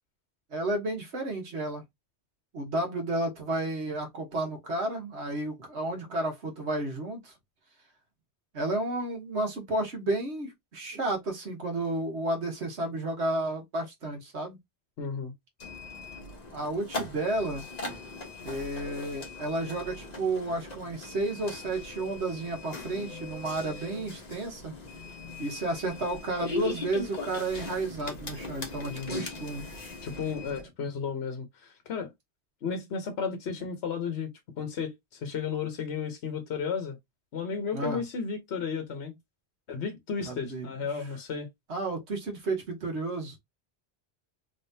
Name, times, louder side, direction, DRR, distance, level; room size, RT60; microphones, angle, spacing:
voice 1, 0.5-1.8 2.5-7.3 8.5-14.6 16.5-17.6 18.4-24.7 25.4-29.7 37.7-38.0 40.2-40.7 41.7-43.4, right 2 dB, 75° right, 1.6 m, -32 dB
voice 2, 15.0-15.3 28.9-29.2 30.0-32.1 32.6-34.3 34.6-37.0 37.3-39.1 39.7-41.5, left 6 dB, 70° left, 1.1 m, -33 dB
sound 1, 15.6-30.6, left 3 dB, 40° left, 1.2 m, -40 dB
3.6 x 3.4 x 2.7 m
omnidirectional pair, 1.1 m